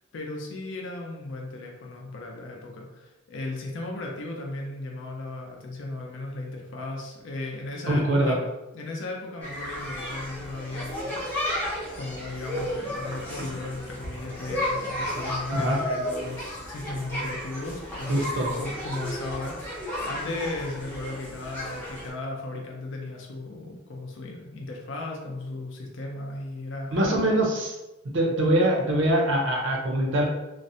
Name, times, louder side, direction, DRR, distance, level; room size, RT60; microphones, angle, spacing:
voice 1, 0.1-8.4 8.7-11.1 11.9-18.2 18.6-27.2, left 2 dB, 60° left, 0 dB, 0.4 m, -36 dB
voice 2, 7.9-8.4 15.5-15.8 18.1-18.5 26.9-27.8 28.1-30.2, right 1 dB, 60° right, 0 dB, 0.5 m, -23 dB
sound 1, 9.4-22.1, left 1 dB, 10° left, 0.6 m, -33 dB
2.5 x 2.0 x 2.6 m, 1.0 s
head